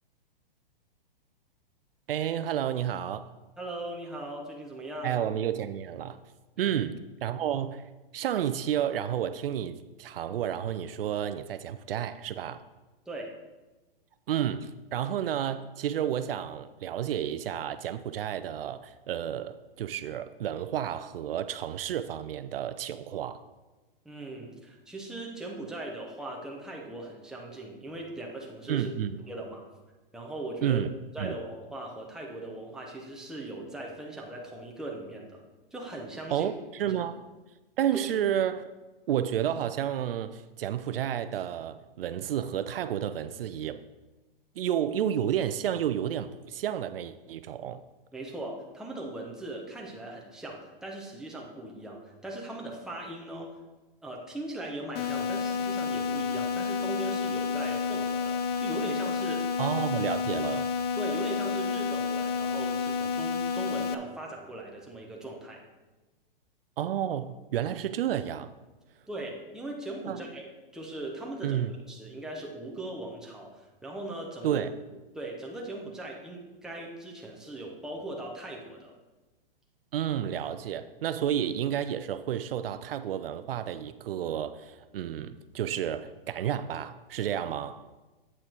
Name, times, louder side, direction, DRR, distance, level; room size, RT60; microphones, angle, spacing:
voice 1, 2.1-3.3 5.0-6.2 6.6-12.6 14.3-23.4 28.7-29.2 30.6-31.4 36.3-37.2 37.8-38.6 39.1-43.8 44.6-47.8 59.6-60.7 66.8-68.5 70.1-70.2 71.4-71.7 74.4-74.7 79.9-87.8, right 10 dB, 70° right, 0.5 m, -31 dB
voice 2, 3.6-5.2 6.6-6.7 13.1-13.3 24.0-28.9 29.3-29.6 30.1-30.8 31.1-35.4 35.7-36.5 36.9-37.0 48.1-53.5 54.0-59.5 61.0-65.6 69.1-74.6 75.1-78.9, right 1 dB, ahead, 1.0 m, -39 dB
sound 1, 54.9-63.9, left 6 dB, 45° left, 0.5 m, -30 dB
8.3 x 5.8 x 4.5 m
hypercardioid pair, 140°, 29 cm